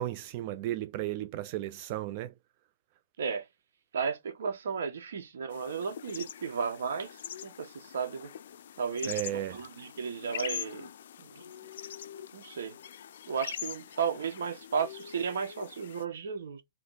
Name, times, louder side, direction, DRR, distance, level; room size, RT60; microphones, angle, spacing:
voice 1, 0.0-2.3 9.0-9.6, right 13 dB, 35° right, 0.3 m, -34 dB
voice 2, 3.2-3.5 3.9-8.3 8.8-10.9 11.2-11.5 12.3-12.8 13.3-16.6, right 6 dB, 75° right, 1.2 m, -34 dB
sound 1, 5.5-16.0, left 9 dB, 65° left, 0.4 m, -43 dB
3.1 x 3.1 x 3.9 m
hypercardioid pair, 160°, 0 cm